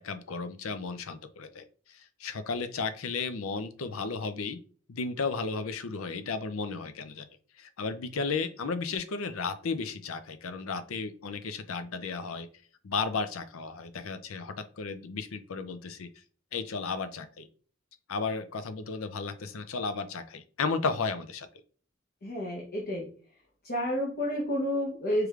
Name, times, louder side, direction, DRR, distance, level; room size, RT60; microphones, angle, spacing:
voice 1, 0.0-4.6 4.9-7.3 7.6-12.5 12.8-16.1 16.5-17.5 18.1-21.5, left 4 dB, 75° left, 10 dB, 0.5 m, -34 dB
voice 2, 22.2-23.1 23.6-25.3, equal, 50° left, -3 dB, 1.0 m, -30 dB
4.7 x 3.2 x 2.4 m, 0.42 s
head